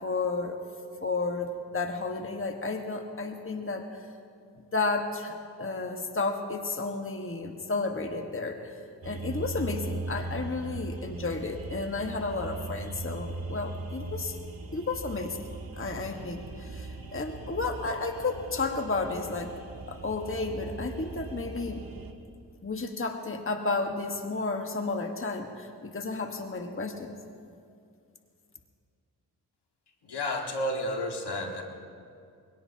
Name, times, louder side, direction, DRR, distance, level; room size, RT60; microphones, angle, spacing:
voice 1, 0.0-0.6 1.0-4.0 4.7-8.8 9.0-14.4 14.7-15.4 15.8-19.5 19.9-21.8 22.6-27.2, left 3 dB, 30° left, 4 dB, 1.5 m, -32 dB
sound 1, 9.0-22.1, right 3 dB, 55° right, 1.7 m, -39 dB
voice 2, 30.0-31.6, left 1 dB, 65° left, 2 dB, 2.0 m, -31 dB
23.0 x 18.0 x 2.9 m, 2.3 s
supercardioid pair, 40°, 42 cm